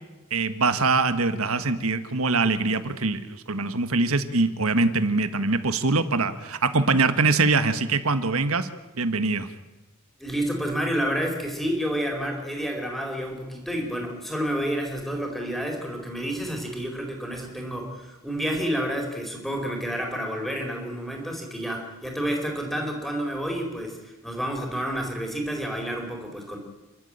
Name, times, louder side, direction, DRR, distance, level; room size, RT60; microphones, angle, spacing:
voice 1, 0.3-8.7 9.0-9.5, right 3 dB, 70° right, 10 dB, 1.5 m, -23 dB
voice 2, 10.2-26.6, equal, ahead, 1 dB, 4.5 m, -29 dB
30.0 x 12.5 x 8.9 m, 1.1 s
head